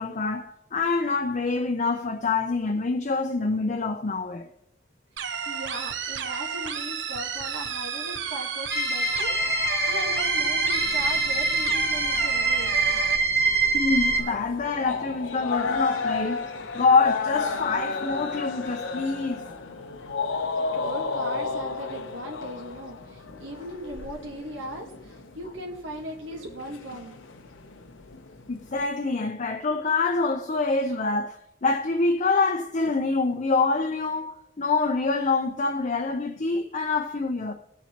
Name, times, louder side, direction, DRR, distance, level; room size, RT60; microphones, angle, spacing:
voice 1, 0.0-4.5 13.7-16.5 16.7-19.4 28.5-37.5, left 3 dB, 40° left, 0.6 m, -26 dB
sound 1, 5.2-13.2, right 6 dB, 65° right, 0.7 m, -32 dB
voice 2, 5.2-12.8 20.5-27.2, equal, 90° right, 1.5 m, -38 dB
sound 2, 8.7-14.2, right 3 dB, 15° right, 1.3 m, -24 dB
sound 3, 10.6-28.8, left 4 dB, 80° left, 0.9 m, -34 dB
21.0 x 7.1 x 2.9 m
head